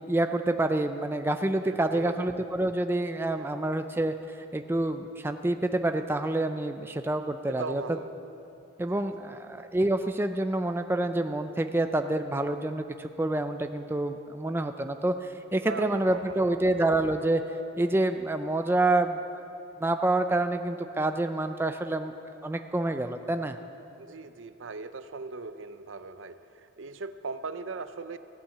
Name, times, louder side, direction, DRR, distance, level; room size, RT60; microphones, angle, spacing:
voice 1, 0.0-7.8 8.8-17.4 17.8-19.4 19.8-22.1 22.4-23.6, right 2 dB, 10° right, 7 dB, 0.3 m, -27 dB
voice 2, 1.6-2.3 3.3-3.5 7.5-8.1 8.8-9.1 15.6-16.7 24.0-28.2, right 3 dB, 75° right, 11 dB, 0.6 m, -39 dB
15.5 x 8.7 x 7.2 m, 2.7 s
head